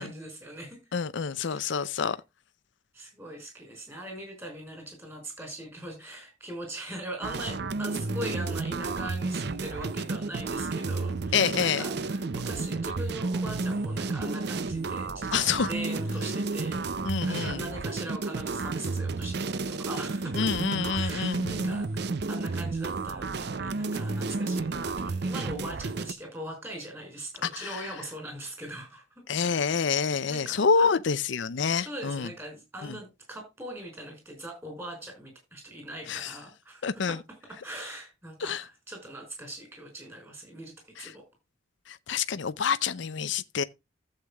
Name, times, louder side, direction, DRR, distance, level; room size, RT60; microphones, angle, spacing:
voice 1, 0.0-0.8 1.4-2.0 2.9-15.3 15.6-16.9 17.2-20.5 20.9-29.0 29.3-29.6 30.3-30.9 31.7-37.2 37.6-40.7 41.0-41.2, right 1 dB, 15° right, 5.2 m, -41 dB
voice 2, 0.9-2.2 11.3-11.8 15.3-15.7 17.0-17.6 20.3-21.8 27.4-27.9 29.3-32.3 32.8-33.0 36.1-36.3 36.8-37.2 38.4-38.6 41.0-41.1 41.9-43.6, left 6 dB, 65° left, 0.5 m, -27 dB
sound 1, 7.2-26.1, right 3 dB, 55° right, 0.6 m, -31 dB
14.5 x 7.9 x 2.3 m
head